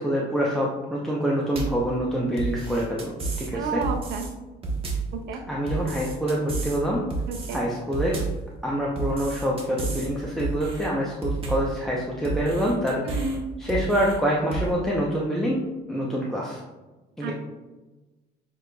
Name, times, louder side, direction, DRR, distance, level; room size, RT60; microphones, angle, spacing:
voice 1, 0.0-3.1 3.4-3.8 5.5-7.0 7.5-8.2 8.6-13.0 13.6-15.6 15.9-16.6 17.2-17.3, equal, ahead, -4 dB, 0.7 m, -26 dB
sound 1, 1.6-1.9 2.4-3.5 3.8-4.3 4.6-5.1 5.7-6.8 7.1-7.6 7.9-8.4 9.0-10.1 10.4-10.9 11.2-11.7 12.2-13.4 13.7-14.2 14.5-14.7, right 3 dB, 30° right, 1.3 m, -31 dB
voice 2, 3.5-4.3 5.3-5.4 7.3-7.6 13.1-13.5 17.2-17.3, right 4 dB, 75° right, 5 dB, 0.6 m, -30 dB
7.3 x 3.2 x 2.3 m, 1.1 s
cardioid pair, 100°, 18 cm